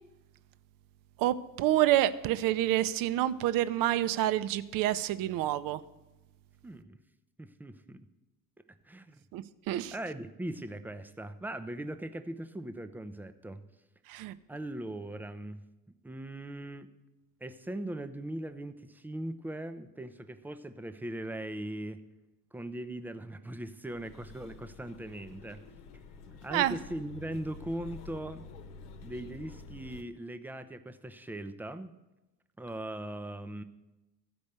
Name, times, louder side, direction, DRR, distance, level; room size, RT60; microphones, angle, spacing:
voice 1, 1.2-5.8 9.3-9.9 14.1-14.3 26.5-26.7, right 13 dB, 45° right, 14 dB, 0.6 m, -28 dB
voice 2, 6.6-7.0 7.4-8.1 8.9-9.2 9.9-13.6 14.5-16.9 17.4-22.0 22.5-25.6 26.4-28.5 29.0-31.9 32.6-33.6, right 1 dB, 5° right, 9 dB, 0.3 m, -40 dB
sound 1, 23.9-30.0, left 4 dB, 70° left, 1.0 m, -49 dB
14.0 x 5.2 x 6.6 m, 1.0 s
figure-of-eight pair, 65°, 49 cm